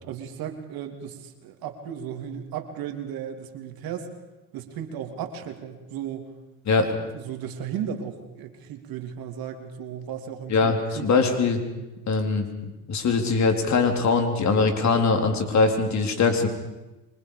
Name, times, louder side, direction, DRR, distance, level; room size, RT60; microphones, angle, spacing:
voice 1, 0.0-4.1 4.5-6.3 7.1-11.1, right 8 dB, 55° right, 5 dB, 3.1 m, -35 dB
voice 2, 11.0-11.6 12.1-12.5 12.9-16.5, left 4 dB, 40° left, 4 dB, 4.2 m, -21 dB
28.0 x 24.5 x 5.1 m, 1.0 s
supercardioid pair, 95°, 42 cm